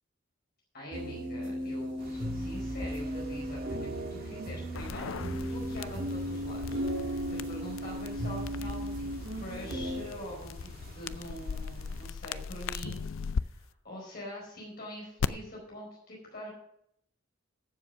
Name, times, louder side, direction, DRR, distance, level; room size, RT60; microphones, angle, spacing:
voice 1, 0.7-9.1 9.3-13.1 13.4-16.5, equal, 50° left, -3 dB, 4.6 m, -44 dB
sound 1, 0.9-10.0, equal, 80° right, 4.7 m, -36 dB
sound 2, 2.0-12.1, right 1 dB, 50° right, 2.0 m, -47 dB
sound 3, 4.7-13.4 15.2-15.3, left 5 dB, 80° left, 0.5 m, -38 dB
14.0 x 7.6 x 5.6 m, 0.73 s
head